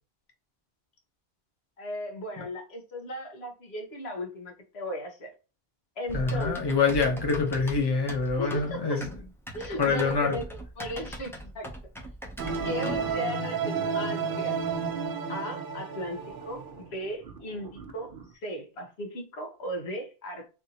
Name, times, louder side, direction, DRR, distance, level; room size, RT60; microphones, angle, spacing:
voice 1, 1.8-5.3 6.0-6.6 8.4-9.0 9.5-11.7 12.0-12.1 12.6-14.6 15.3-16.2 16.5-20.5, equal, 90° left, 1.3 m, -37 dB
voice 2, 6.1-9.2 9.8-10.4, left 4 dB, 25° left, 0.8 m, -26 dB
Typing, 6.1-13.1, equal, 5° left, 0.5 m, -39 dB
sound 1, 12.4-18.3, right 5 dB, 60° right, 0.7 m, -32 dB
3.4 x 2.6 x 2.7 m
omnidirectional pair, 1.0 m